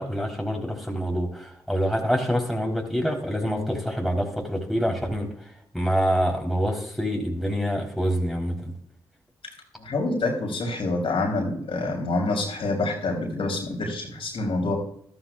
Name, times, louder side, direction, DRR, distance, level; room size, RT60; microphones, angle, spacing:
voice 1, 0.0-5.3 5.7-8.7, equal, ahead, 0 dB, 3.9 m, -26 dB
voice 2, 9.8-14.8, left 2 dB, 60° left, 1 dB, 3.4 m, -27 dB
13.5 x 12.5 x 2.4 m, 0.67 s
hypercardioid pair, 40°, 11 cm